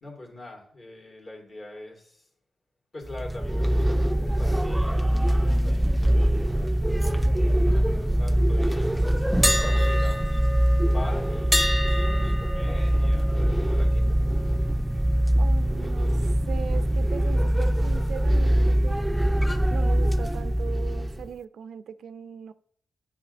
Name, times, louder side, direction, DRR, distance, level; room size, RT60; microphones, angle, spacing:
voice 1, 0.0-2.3 2.9-6.2 7.0-8.9 9.2-10.6 10.8-11.6 12.2-14.2, left 2 dB, 50° left, 2.4 m, -43 dB
sound 1, 3.1-21.3, equal, 5° right, 0.4 m, -23 dB
sound 2, 9.4-15.3 15.6-15.9 19.4-19.7, left 1 dB, 20° left, 1.1 m, -31 dB
voice 2, 15.4-19.0 19.7-22.5, right 7 dB, 75° right, 0.3 m, -39 dB
9.2 x 5.9 x 2.6 m
supercardioid pair, 50°, 0 cm